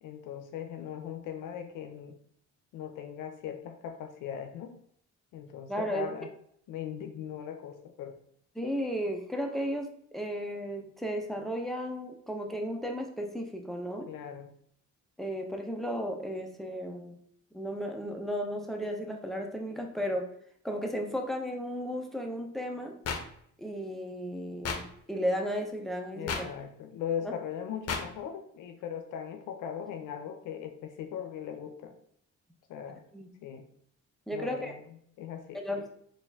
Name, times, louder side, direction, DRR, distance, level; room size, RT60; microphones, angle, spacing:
voice 1, 0.0-2.2 2.7-4.7 5.3-6.3 6.7-8.2 14.1-14.5 26.1-32.0 32.7-33.0 33.4-33.6 34.3-34.8 35.2-35.9, left 8 dB, 85° left, 6 dB, 0.5 m, -39 dB
voice 2, 5.7-6.1 8.5-14.1 15.2-17.2 17.5-20.3 20.6-22.9 23.6-26.5 27.2-27.3 33.1-33.3 34.3-34.8 35.5-35.8, equal, ahead, 3 dB, 0.7 m, -34 dB
sound 1, 23.0-23.2 24.6-24.8 26.3-26.4 27.9-28.0, left 5 dB, 55° left, 0.7 m, -31 dB
4.1 x 2.5 x 3.5 m, 0.67 s
cardioid pair, 90°, 30 cm